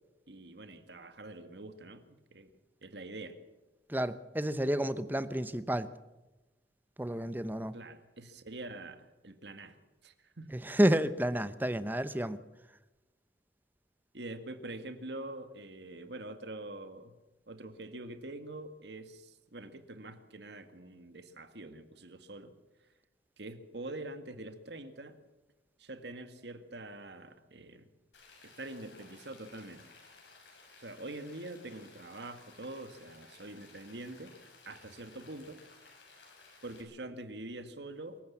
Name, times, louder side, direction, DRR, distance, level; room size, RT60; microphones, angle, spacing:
voice 1, 0.3-2.5 2.8-3.4 7.7-9.8 10.0-10.5 14.1-17.2 17.5-22.5 23.4-25.2 25.8-27.9 28.4-29.8 30.8-34.3 34.7-35.6 36.6-38.2, right 2 dB, 70° right, 9 dB, 1.9 m, -45 dB
voice 2, 3.9-5.9 7.0-7.7 10.5-12.4, right 1 dB, 10° right, 13 dB, 0.8 m, -30 dB
Rain, 28.1-36.8, left 3 dB, 90° left, 7.2 m, -57 dB
24.5 x 15.0 x 7.3 m, 1.1 s
head